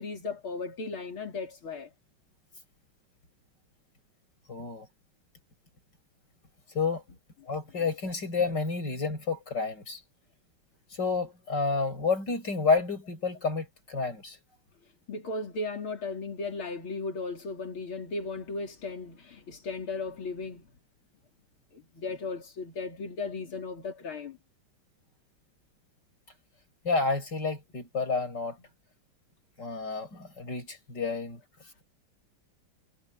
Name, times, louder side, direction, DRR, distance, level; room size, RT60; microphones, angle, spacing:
voice 1, 0.0-1.9 15.1-20.7 21.7-24.4, left 3 dB, 80° left, 4.1 m, -36 dB
voice 2, 4.5-4.9 6.7-7.0 7.5-10.0 10.9-14.4 26.8-28.6 29.6-31.4, left 4 dB, 55° left, 7.7 m, -30 dB
omnidirectional pair, 2.3 m